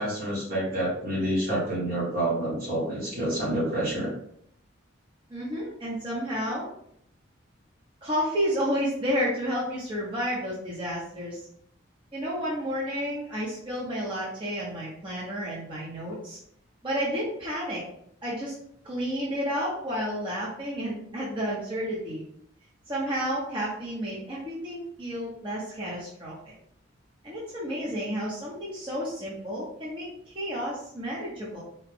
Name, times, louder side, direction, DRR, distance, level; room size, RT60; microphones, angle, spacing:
voice 1, 0.0-4.1, right 1 dB, 50° right, -5 dB, 1.6 m, -28 dB
voice 2, 5.3-6.6 8.0-11.4 12.1-16.4 16.8-17.8 18.2-18.5 18.8-22.2 22.9-26.5 27.2-31.6, equal, 25° right, -8 dB, 1.0 m, -31 dB
4.5 x 2.4 x 3.5 m, 0.69 s
head